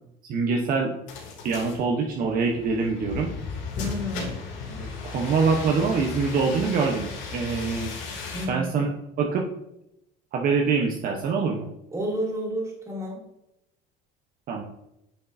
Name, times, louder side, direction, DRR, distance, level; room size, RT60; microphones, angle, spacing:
voice 1, 0.3-0.9 1.4-3.3 4.7-7.9 8.5-8.9 9.2-9.4 10.3-11.7 14.5-14.6, right 4 dB, 45° right, 1 dB, 0.9 m, -24 dB
sound 1, 1.1-8.5, left 5 dB, 75° left, 2.7 m, -35 dB
voice 2, 3.8-4.3 8.3-8.8 11.9-13.2, equal, 15° right, -2 dB, 2.5 m, -30 dB
9.7 x 6.5 x 2.6 m, 0.85 s
cardioid pair, 145°, 20 cm